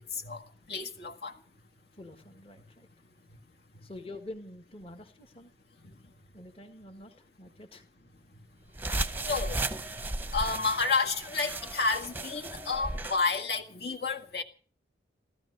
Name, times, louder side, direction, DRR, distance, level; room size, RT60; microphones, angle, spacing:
voice 1, 0.7-1.3 9.2-9.6 10.3-14.4, left 4 dB, 60° left, 1.9 m, -30 dB
voice 2, 2.0-2.9 3.8-5.5 6.3-7.8, left 1 dB, 30° left, 1.7 m, -46 dB
sound 1, 8.7-13.2, right 2 dB, 10° right, 0.8 m, -35 dB
15.5 x 14.5 x 6.4 m
head